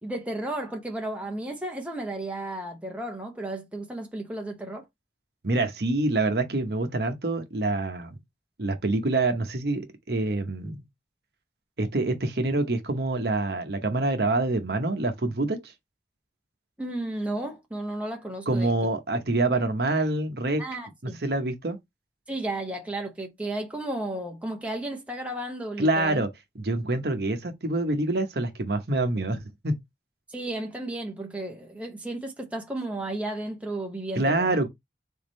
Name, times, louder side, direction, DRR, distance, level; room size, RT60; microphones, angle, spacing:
voice 1, 0.0-4.8 16.8-18.7 20.6-21.2 22.3-26.2 30.3-34.6, right 1 dB, 10° right, 0.9 m, -33 dB
voice 2, 5.4-8.1 8.6-10.8 11.8-15.7 18.5-20.6 21.2-21.8 25.8-26.3 26.6-29.8 34.2-34.7, right 2 dB, 65° right, 0.9 m, -26 dB
4.1 x 3.6 x 3.0 m
head